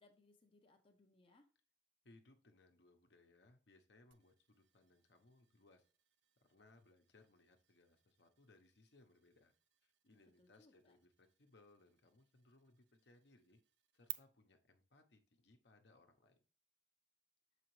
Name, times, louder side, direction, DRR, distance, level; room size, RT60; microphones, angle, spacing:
voice 1, 0.0-1.5 10.4-10.9, left 2 dB, 30° left, 3 dB, 0.6 m, -69 dB
voice 2, 2.0-5.8 6.4-9.5 9.8-13.6 13.9-16.4, left 2 dB, 70° left, 5 dB, 0.9 m, -68 dB
sound 1, 4.1-14.1, right 16 dB, 75° right, 0.5 m, -58 dB
6.9 x 4.9 x 3.1 m, 0.39 s
head